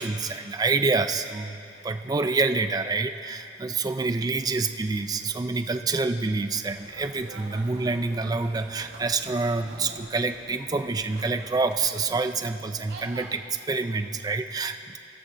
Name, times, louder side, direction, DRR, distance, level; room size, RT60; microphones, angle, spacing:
voice 1, 0.0-15.0, right 3 dB, 20° right, 6 dB, 0.4 m, -27 dB
sound 1, 6.6-13.4, right 2 dB, 70° right, 1.0 m, -46 dB
19.5 x 6.7 x 2.6 m, 2.5 s
head